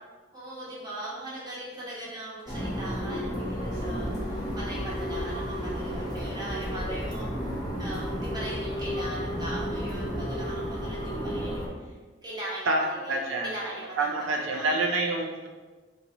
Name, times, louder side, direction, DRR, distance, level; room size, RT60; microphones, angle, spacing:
voice 1, 0.3-12.0 12.2-14.9, right 1 dB, 20° right, -7 dB, 0.9 m, -40 dB
sound 1, 2.5-11.7, equal, 20° left, 0.7 m, -32 dB
voice 2, 12.7-13.5 14.0-15.5, right 2 dB, 85° right, 2 dB, 0.4 m, -27 dB
3.8 x 2.6 x 2.9 m, 1.3 s
head